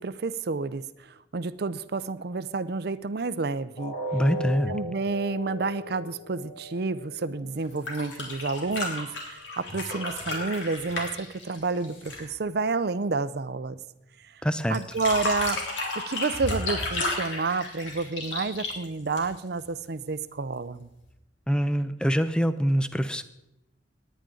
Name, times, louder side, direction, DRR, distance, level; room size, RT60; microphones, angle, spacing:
voice 1, 0.0-3.9 4.7-13.8 14.2-14.3 14.7-15.6 16.1-20.9, right 4 dB, 60° right, 14 dB, 0.6 m, -30 dB
sound 1, 3.8-9.7 10.1-10.3 10.8-10.9, left 1 dB, 45° left, 3.5 m, -38 dB
voice 2, 4.1-4.8 14.4-14.8 21.5-23.2, equal, 5° left, 11 dB, 0.6 m, -24 dB
sound 2, 7.6-12.3 14.7-19.6 21.0-21.1, left 2 dB, 90° left, 3.4 m, -33 dB
18.5 x 10.0 x 3.9 m, 0.90 s
head